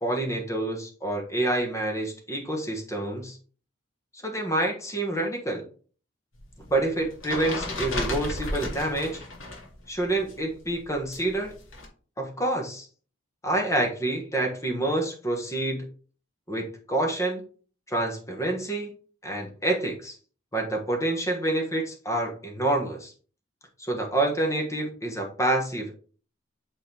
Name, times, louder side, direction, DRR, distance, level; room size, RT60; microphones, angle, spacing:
voice 1, 0.0-3.4 4.1-5.6 6.7-9.2 9.9-11.5 12.2-12.9 13.4-15.8 16.5-17.4 17.9-18.9 19.2-20.1 20.5-23.1 23.8-25.9, right 1 dB, 15° left, 2 dB, 1.3 m, -27 dB
sound 1, 6.4-9.7 10.0-11.9, left 2 dB, 85° left, 2.2 m, -34 dB
8.5 x 4.0 x 3.4 m, 0.41 s
head